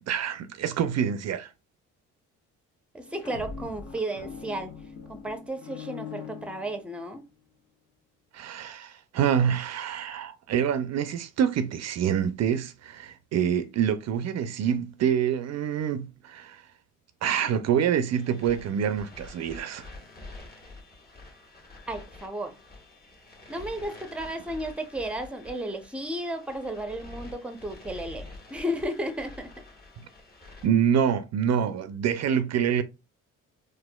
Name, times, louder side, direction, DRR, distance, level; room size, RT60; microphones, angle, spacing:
voice 1, 0.0-1.5 8.3-16.6 17.2-19.9 30.6-32.8, right 8 dB, 60° right, 0.4 m, -26 dB
voice 2, 2.9-4.7 5.1-7.2 21.9-22.6 23.5-29.5, right 1 dB, 5° right, 0.6 m, -33 dB
sound 1, 3.0-7.2, left 6 dB, 50° left, 0.7 m, -42 dB
sound 2, 18.1-30.7, left 2 dB, 30° left, 1.3 m, -47 dB
4.2 x 2.5 x 2.2 m
cardioid pair, 90°, 30 cm